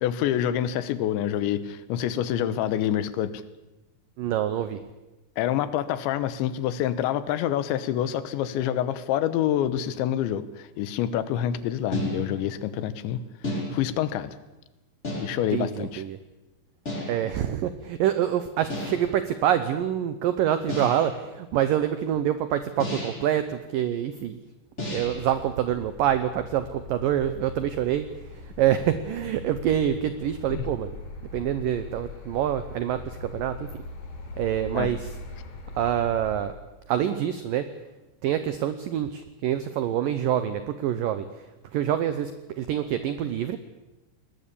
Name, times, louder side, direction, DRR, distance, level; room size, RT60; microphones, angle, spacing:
voice 1, 0.0-3.4 5.4-13.2 13.4-14.4 15.2-16.0 30.5-30.6 34.7-34.9, left 11 dB, 80° left, 14 dB, 3.3 m, -27 dB
voice 2, 4.2-4.8 15.5-16.2 17.1-24.4 24.9-28.1 28.3-30.9 31.3-33.6 34.4-35.1 35.8-36.5 36.9-37.7 38.2-41.3 41.7-43.6, right 10 dB, 85° right, 11 dB, 1.9 m, -26 dB
sound 1, 11.9-12.6 13.4-14.1 15.0-15.6 16.9-17.4 18.7-19.2 20.7-21.2 22.8-23.4 24.8-25.3, left 1 dB, 15° left, 5.8 m, -32 dB
sound 2, 24.9-36.5, left 2 dB, 50° left, 5.2 m, -41 dB
21.5 x 19.5 x 8.4 m, 1.1 s
omnidirectional pair, 5.2 m